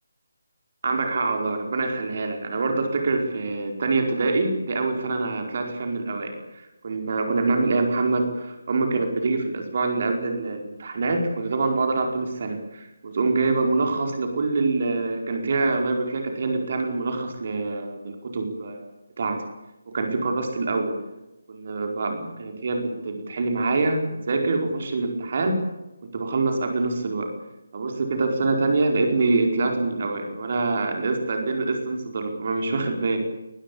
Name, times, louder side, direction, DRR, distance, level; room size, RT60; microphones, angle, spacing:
voice 1, 0.8-19.4 19.9-21.0 21.5-25.6 26.1-27.3 27.7-33.2, right 3 dB, 45° right, 4 dB, 4.8 m, -25 dB
21.5 x 20.5 x 8.6 m, 0.97 s
figure-of-eight pair, 150°, 0 cm